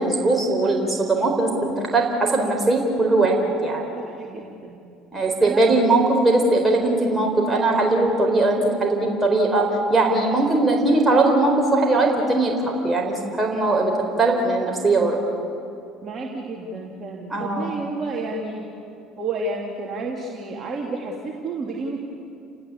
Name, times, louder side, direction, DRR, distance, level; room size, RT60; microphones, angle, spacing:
voice 1, 0.0-3.3 3.6-3.8 5.1-9.6 9.9-13.9 14.2-15.2 17.3-17.7, right 2 dB, 20° right, 1 dB, 4.3 m, -20 dB
voice 2, 3.9-4.8 5.4-5.8 16.0-18.7 19.2-22.0, right 3 dB, 35° right, -1 dB, 2.9 m, -31 dB
30.0 x 18.5 x 8.5 m, 2.6 s
figure-of-eight pair, 60°, 0 cm